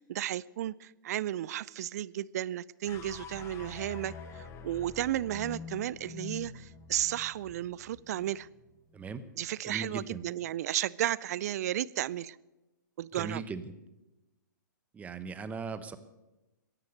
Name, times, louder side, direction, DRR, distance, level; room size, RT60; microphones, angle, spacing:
voice 1, 0.0-8.5 9.4-12.4 13.0-13.4, right 12 dB, 55° right, 22 dB, 0.4 m, -33 dB
sound 1, 2.9-9.2, left 5 dB, 25° left, 1.3 m, -46 dB
voice 2, 8.9-9.3 9.6-10.2 13.1-13.8 14.9-16.0, right 5 dB, 15° right, 12 dB, 0.9 m, -39 dB
14.5 x 11.0 x 6.7 m, 1.0 s
hypercardioid pair, 120°, 10 cm